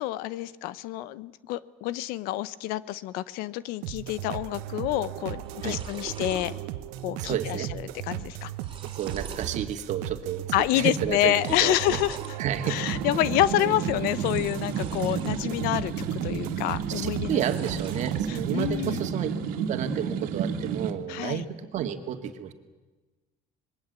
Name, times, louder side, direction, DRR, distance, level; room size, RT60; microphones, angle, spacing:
voice 1, 0.0-6.5 7.0-8.5 10.5-12.2 12.6-17.4 18.3-19.1 21.1-21.4, left 15 dB, 80° left, 18 dB, 1.0 m, -28 dB
sound 1, 3.8-19.1, right 13 dB, 90° right, 1.3 m, -37 dB
sound 2, 5.0-5.1 5.3-6.5 7.0-7.4 7.6-7.7 8.3-9.6 10.0-10.5 11.2-12.3 14.1-15.4 15.9-16.5 17.2-18.2, right 6 dB, 35° right, 3.6 m, -42 dB
voice 2, 7.2-7.7 8.8-11.3 11.6-12.0 12.4-12.8 16.9-19.3 19.6-22.5, right 9 dB, 55° right, 8 dB, 2.3 m, -31 dB
sound 3, 12.6-20.9, right 6 dB, 75° right, 2.4 m, -31 dB
26.0 x 21.5 x 8.3 m, 1.2 s
cardioid pair, 125°, 15 cm